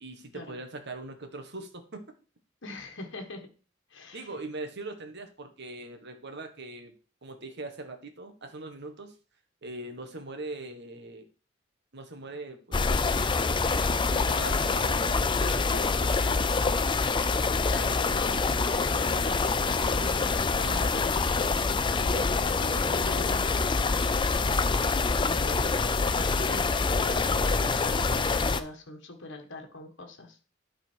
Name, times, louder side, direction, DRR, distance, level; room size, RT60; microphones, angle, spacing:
voice 1, 0.0-2.0 4.1-6.9 7.2-9.1 9.6-11.2 11.9-13.1 14.1-16.6, right 2 dB, 60° right, 6 dB, 1.4 m, -41 dB
voice 2, 2.6-3.5 3.9-4.3 17.7-18.4 18.7-21.5 22.0-24.7 25.2-30.4, left 2 dB, 65° left, 4 dB, 1.6 m, -42 dB
sound 1, 12.7-28.6, left 4 dB, 25° left, 0.5 m, -26 dB
11.5 x 4.2 x 4.5 m, 0.37 s
head